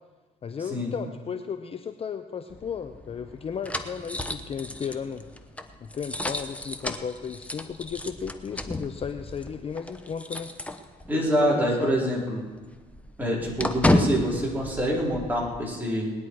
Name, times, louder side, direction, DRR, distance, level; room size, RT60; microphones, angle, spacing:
voice 1, 0.4-5.2 5.8-10.5 11.2-12.1, left 7 dB, 35° left, 8 dB, 0.7 m, -35 dB
sound 1, 2.5-11.4 11.7-11.8 12.1-15.6, left 1 dB, 10° left, 0.9 m, -32 dB
voice 2, 11.1-12.4 13.2-16.1, equal, 10° right, -4 dB, 4.2 m, -26 dB
20.0 x 10.0 x 4.8 m, 1.4 s
cardioid pair, 110°, 17 cm